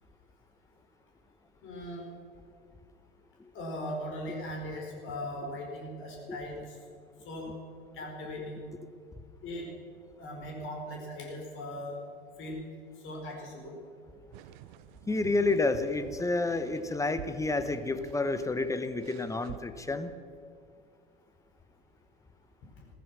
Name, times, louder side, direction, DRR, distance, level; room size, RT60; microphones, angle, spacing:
voice 1, 1.6-2.1 3.5-6.8 7.2-7.5 7.9-8.6 9.4-9.7 10.2-12.0 12.4-12.6 13.0-13.7, left 1 dB, 45° left, 0 dB, 4.8 m, -39 dB
sound 1, 14.3-19.6, right 13 dB, 55° right, 0.7 m, -48 dB
voice 2, 15.1-20.1, left 3 dB, 10° left, 11 dB, 1.0 m, -30 dB
16.0 x 14.0 x 6.3 m, 2.3 s
figure-of-eight pair, 80°, 29 cm